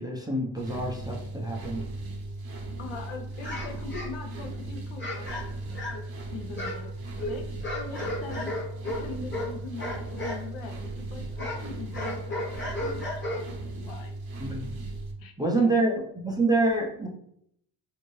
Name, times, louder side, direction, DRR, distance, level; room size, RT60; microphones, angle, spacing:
voice 1, 0.0-1.9 14.4-14.7 15.4-17.1, right 2 dB, 10° right, -2 dB, 0.5 m, -26 dB
sound 1, 0.6-15.1, right 2 dB, 45° right, 0.8 m, -37 dB
voice 2, 2.8-5.3 5.9-6.0 6.3-6.9 7.3-7.5 7.7-8.6 8.9-13.4 13.8-14.1 15.2-15.8, left 4 dB, 70° left, 3 dB, 0.8 m, -41 dB
sound 2, 3.4-4.5 5.0-6.2 6.5-10.5 10.7-13.7, left 1 dB, 25° left, 1.1 m, -35 dB
2.7 x 2.5 x 3.1 m, 0.71 s
supercardioid pair, 70°, 49 cm